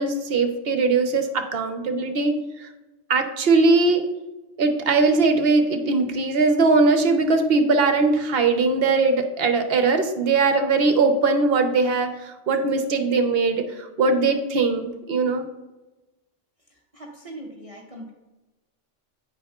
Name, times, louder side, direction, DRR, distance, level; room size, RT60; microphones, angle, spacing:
voice 1, 0.0-2.3 2.6-2.7 3.1-4.0 4.6-15.5, right 3 dB, 60° right, 6 dB, 1.0 m, -20 dB
voice 2, 16.7-18.1, right 1 dB, 30° right, -1 dB, 0.9 m, -41 dB
10.0 x 9.1 x 2.4 m, 1.1 s
omnidirectional pair, 1.2 m